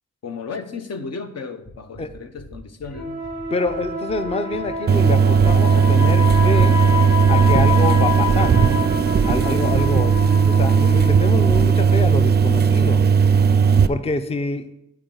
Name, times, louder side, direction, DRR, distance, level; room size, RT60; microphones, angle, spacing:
voice 1, 0.2-3.2, left 4 dB, 60° left, 0.8 m, -34 dB
sound 1, 1.6-10.5, right 1 dB, 40° left, 2.1 m, -43 dB
sound 2, 2.9-12.6, left 4 dB, 90° left, 2.5 m, -28 dB
voice 2, 3.5-6.8 7.3-8.8 9.2-10.1 10.5-13.0 13.9-14.7, left 2 dB, 20° left, 0.5 m, -26 dB
sound 3, 4.9-13.9, right 6 dB, 35° right, 0.4 m, -16 dB
10.5 x 4.5 x 3.9 m
cardioid pair, 85°, 29 cm